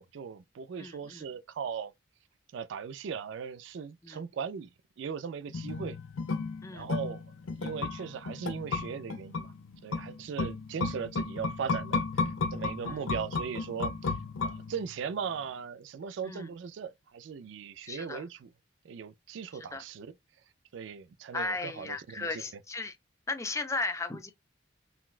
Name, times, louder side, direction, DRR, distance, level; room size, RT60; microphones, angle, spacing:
voice 1, 0.0-1.9 2.5-4.7 5.0-6.0 6.7-7.2 7.6-9.5 9.8-12.0 12.5-18.5 18.8-20.1 20.7-22.4, right 6 dB, 70° right, 0.3 m, -38 dB
voice 2, 0.8-1.3 4.0-4.2 6.6-6.9 12.8-13.1 16.2-16.5 17.9-18.2 19.5-19.8 21.3-23.0 23.3-24.3, left 3 dB, 15° left, 0.4 m, -36 dB
sound 1, 5.5-15.1 15.4-15.5, left 4 dB, 90° left, 0.5 m, -34 dB
4.0 x 2.2 x 2.4 m
head